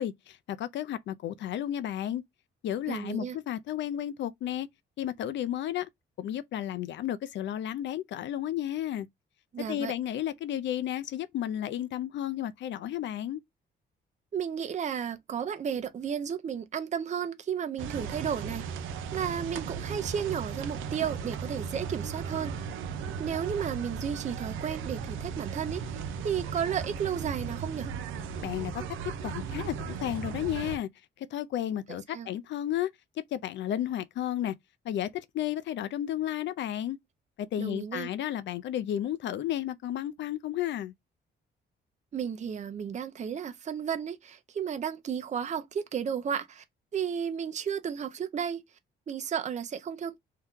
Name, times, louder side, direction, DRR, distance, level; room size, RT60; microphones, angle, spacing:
voice 1, 0.0-2.2 2.6-4.7 5.0-5.9 6.2-9.1 9.7-13.4 28.4-28.7 29.2-30.9 31.2-32.9 33.3-34.5 34.8-37.0 37.4-40.9, left 11 dB, 65° left, 0.5 m, -32 dB
voice 2, 2.9-3.4 9.5-9.9 14.3-18.6 19.1-22.5 23.2-25.8 26.2-27.9 32.1-32.3 37.6-38.1 42.1-46.6 46.9-48.6 49.1-50.2, right 8 dB, 35° right, 0.5 m, -33 dB
sound 1, 17.8-30.8, right 6 dB, 90° right, 0.6 m, -36 dB
2.8 x 2.2 x 3.6 m
cardioid pair, 90°, 20 cm